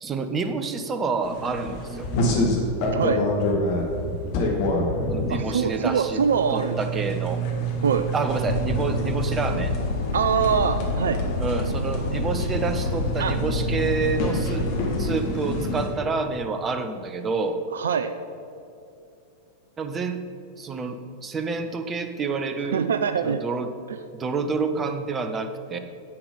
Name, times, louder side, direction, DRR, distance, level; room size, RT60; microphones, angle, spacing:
voice 1, 0.0-2.1 5.1-6.2 6.5-7.4 8.1-9.7 11.4-14.7 15.0-17.6 19.8-20.2 20.6-22.9 23.2-23.7 24.1-25.8, right 4 dB, 20° right, 8 dB, 0.8 m, -28 dB
sound 1, 1.2-15.9, equal, 45° left, 1.8 m, -28 dB
voice 2, 2.9-3.2 5.3-6.8 7.8-8.1 10.1-11.2 13.2-13.4 17.7-18.1 22.6-23.4 23.9-24.0, right 7 dB, 65° right, 10 dB, 0.4 m, -24 dB
sound 2, 8.5-15.2, left 3 dB, 75° left, 0.5 m, -28 dB
9.8 x 8.1 x 5.3 m, 2.6 s
figure-of-eight pair, 90°, 0 cm